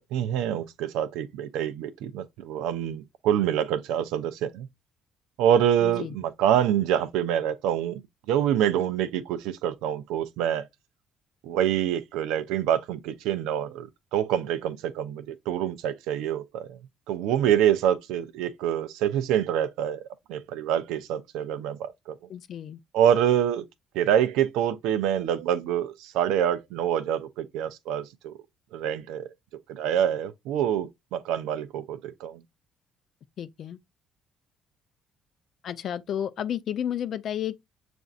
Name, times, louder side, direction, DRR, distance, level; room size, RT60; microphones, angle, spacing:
voice 1, 0.1-4.7 5.4-8.0 8.3-10.7 11.4-16.8 17.1-21.9 22.9-23.6 23.9-28.3 28.7-29.3 29.7-32.4, right 10 dB, 85° right, 0.5 m, -26 dB
voice 2, 5.8-6.1 22.3-22.8 33.4-33.8 35.6-37.6, left 10 dB, 60° left, 0.4 m, -32 dB
6.8 x 2.6 x 2.3 m
supercardioid pair, 80°, 0 cm